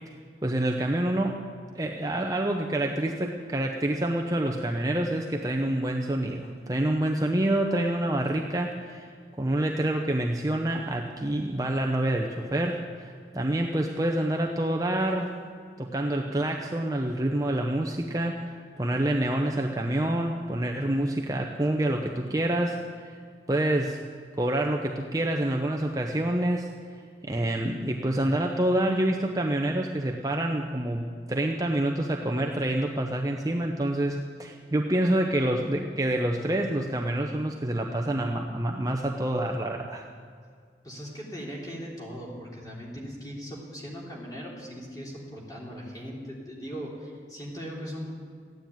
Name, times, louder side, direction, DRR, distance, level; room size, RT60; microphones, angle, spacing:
voice 1, 0.4-1.4 1.7-9.1 9.4-15.4 15.8-22.8 23.0-23.2 23.5-24.0 24.4-26.7 27.2-40.0, right 1 dB, 20° right, 1 dB, 0.7 m, -27 dB
voice 2, 40.8-48.1, equal, 20° left, -4 dB, 3.3 m, -39 dB
14.5 x 9.7 x 9.1 m, 2.1 s
head